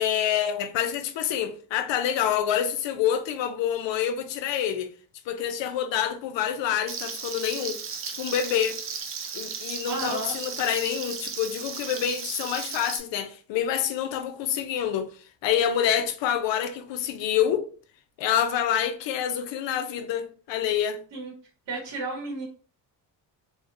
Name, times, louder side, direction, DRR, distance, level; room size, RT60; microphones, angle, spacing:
voice 1, 0.0-4.9 5.3-7.8 8.2-8.8 9.3-15.1 15.4-17.7 18.2-21.0, left 9 dB, 80° left, 0.6 m, -27 dB
Frying (food), 6.9-13.0, right 6 dB, 35° right, 0.4 m, -35 dB
voice 2, 9.8-10.3 21.1-21.3 21.7-22.4, right 2 dB, 70° right, 0.9 m, -32 dB
2.7 x 2.1 x 2.5 m
cardioid pair, 110°, 44 cm